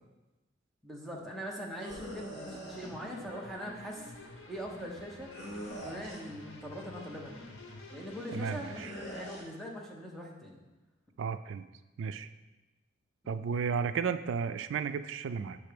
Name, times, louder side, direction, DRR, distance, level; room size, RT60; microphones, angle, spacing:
voice 1, 0.8-4.1 4.5-5.3 5.8-7.5 7.9-10.6 13.2-13.4, equal, ahead, -2 dB, 0.8 m, -42 dB
sound 1, 1.8-2.9 5.3-6.3 8.7-9.4, equal, 55° left, 1.7 m, -43 dB
sound 2, 2.8-8.8, left 2 dB, 85° left, 0.8 m, -49 dB
voice 2, 8.3-8.9 11.2-11.7 12.0-12.3 13.3-15.6, right 6 dB, 70° right, 11 dB, 0.3 m, -33 dB
6.7 x 3.3 x 5.0 m, 1.1 s
head